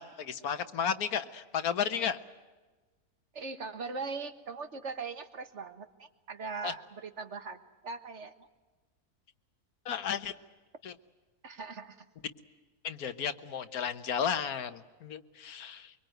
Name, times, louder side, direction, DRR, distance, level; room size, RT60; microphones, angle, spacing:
voice 1, 0.0-2.2 6.6-6.7 9.8-10.3 10.8-10.9 12.8-15.9, left 7 dB, 80° left, 10 dB, 1.6 m, -33 dB
voice 2, 3.3-8.5 11.4-12.1, right 4 dB, 50° right, 9 dB, 1.7 m, -40 dB
24.0 x 23.5 x 9.1 m, 1.3 s
omnidirectional pair, 1.6 m